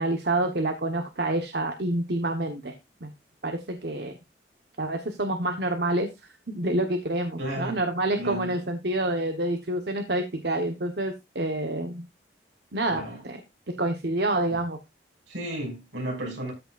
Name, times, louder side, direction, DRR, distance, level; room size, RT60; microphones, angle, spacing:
voice 1, 0.0-2.7 3.0-3.1 3.4-4.2 4.8-12.1 12.7-13.4 13.8-14.8, right 1 dB, 60° right, 1.2 m, -28 dB
voice 2, 7.4-7.8 8.2-8.6 12.9-13.2 15.3-16.5, right 1 dB, 80° right, 6.5 m, -33 dB
14.0 x 6.6 x 2.5 m
head